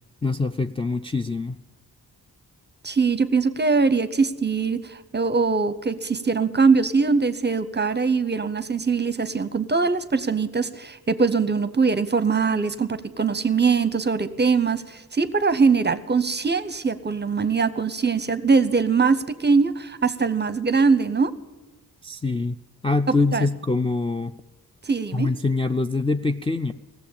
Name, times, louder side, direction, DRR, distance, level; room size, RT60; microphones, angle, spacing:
voice 1, 0.2-1.6 22.0-22.6 22.8-24.3 25.1-26.7, left 3 dB, 15° left, 0.3 m, -24 dB
voice 2, 2.8-21.3 23.3-23.5 24.9-25.3, right 4 dB, 30° right, 0.7 m, -22 dB
16.0 x 7.2 x 8.6 m
wide cardioid pair, 75°, 38 cm